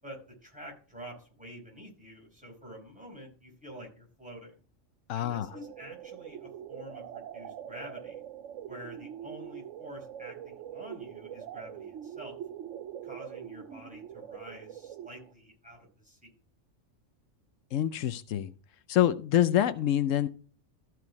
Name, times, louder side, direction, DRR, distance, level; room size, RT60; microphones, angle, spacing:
voice 1, 0.0-4.6 5.1-8.2 8.7-12.4 13.0-16.3, equal, 5° right, -1 dB, 4.8 m, -47 dB
voice 2, 5.1-5.5 17.7-18.5 18.9-20.3, left 11 dB, 85° left, 13 dB, 1.0 m, -26 dB
sound 1, 5.4-15.3, right 10 dB, 80° right, 1.0 m, -43 dB
14.0 x 4.9 x 4.6 m, 0.39 s
omnidirectional pair, 1.3 m